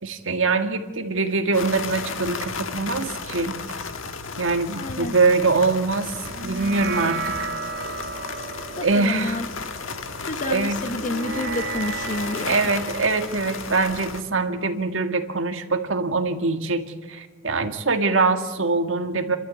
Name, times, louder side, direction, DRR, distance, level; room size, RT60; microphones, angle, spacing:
voice 1, 0.0-3.6 4.4-6.1 6.4-7.5 8.8-9.4 10.5-10.8 12.4-16.8 17.1-19.4, right 3 dB, 80° right, 6 dB, 2.0 m, -23 dB
sound 1, 1.5-14.2, left 4 dB, 80° left, 1.5 m, -34 dB
voice 2, 4.7-5.1 8.8-9.5 10.2-12.7, left 2 dB, 40° left, 11 dB, 1.0 m, -29 dB
sound 2, 6.3-15.0, right 4 dB, 55° right, 1.2 m, -34 dB
29.5 x 12.5 x 8.6 m, 1.3 s
head